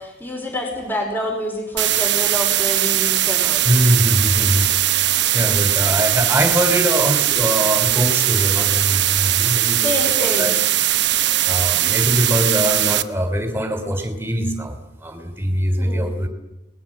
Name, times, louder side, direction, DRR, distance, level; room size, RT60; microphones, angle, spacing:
voice 1, 0.0-3.7 9.8-10.5 15.8-16.2, left 1 dB, 10° left, 2 dB, 4.8 m, -27 dB
sound 1, 1.8-13.0, right 13 dB, 65° right, 1.0 m, -19 dB
voice 2, 3.6-4.7 5.3-10.6 11.4-16.3, equal, 15° right, 7 dB, 3.3 m, -22 dB
28.5 x 20.0 x 7.5 m, 0.94 s
head